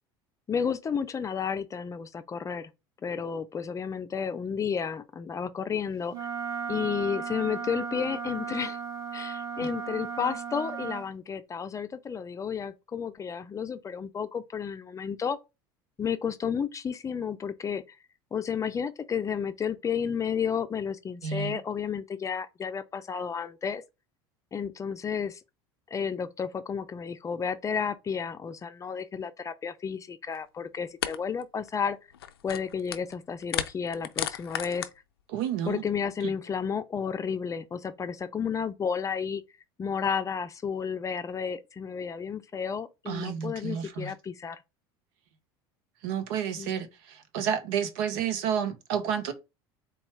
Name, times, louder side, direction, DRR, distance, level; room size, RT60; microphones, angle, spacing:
voice 1, 0.5-2.7 3.0-6.1 6.7-8.8 9.1-15.4 16.0-17.8 18.3-23.8 24.5-25.4 25.9-32.0 32.4-34.9 35.6-39.4 39.8-44.6 46.6-46.8, left 6 dB, 25° left, 0.5 m, -32 dB
Wind instrument woodwind instrument, 6.1-11.1, right 6 dB, 30° right, 1.9 m, -35 dB
voice 2, 21.2-21.6 35.3-35.8 43.1-44.1 46.0-49.3, right 8 dB, 70° right, 0.8 m, -30 dB
sound 1, 30.3-30.4 31.0-31.2 31.4-31.7 32.1-33.1 33.4-34.9, left 10 dB, 90° left, 0.4 m, -33 dB
4.0 x 2.3 x 4.6 m
hypercardioid pair, 90°, 12 cm